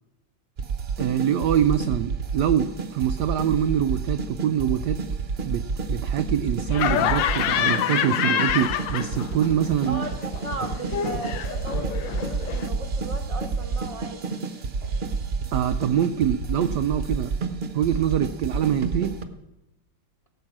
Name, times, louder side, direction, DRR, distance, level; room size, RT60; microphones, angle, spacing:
sound 1, 0.6-19.2, right 4 dB, 50° right, 0.7 m, -30 dB
voice 1, 1.0-5.0 5.4-10.0 15.5-17.3 17.7-19.1, right 9 dB, 85° right, 10 dB, 0.9 m, -24 dB
Laughter, 6.7-9.5 9.8-12.7, left 10 dB, 70° left, 1.3 m, -27 dB
voice 2, 9.8-14.2, right 2 dB, 30° left, 3 dB, 0.6 m, -36 dB
17.0 x 8.0 x 6.1 m, 0.97 s
omnidirectional pair, 2.4 m